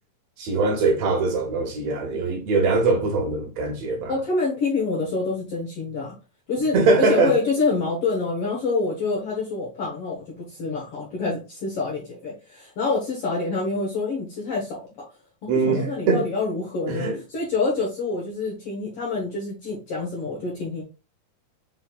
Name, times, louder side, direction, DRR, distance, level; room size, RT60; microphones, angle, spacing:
voice 1, 0.4-4.1 6.7-7.4 15.5-16.3 16.9-17.2, right 3 dB, 70° right, 1.7 m, -22 dB
voice 2, 4.1-6.1 6.5-15.1 15.4-20.8, left 3 dB, 65° left, 1.5 m, -27 dB
5.6 x 4.0 x 2.3 m
omnidirectional pair, 4.1 m